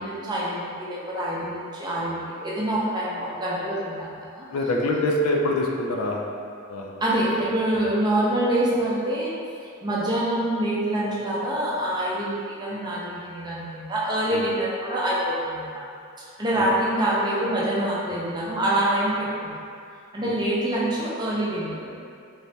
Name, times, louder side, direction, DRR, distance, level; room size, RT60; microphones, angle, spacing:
voice 1, 0.0-4.4 7.0-9.3 9.8-15.8 16.2-19.5 20.1-21.9, right 1 dB, 20° right, -7 dB, 0.5 m, -26 dB
voice 2, 4.5-6.4 6.7-6.9 14.3-14.5 16.6-16.7, left 1 dB, 75° left, 0 dB, 0.4 m, -25 dB
3.2 x 3.1 x 2.7 m, 2.4 s
head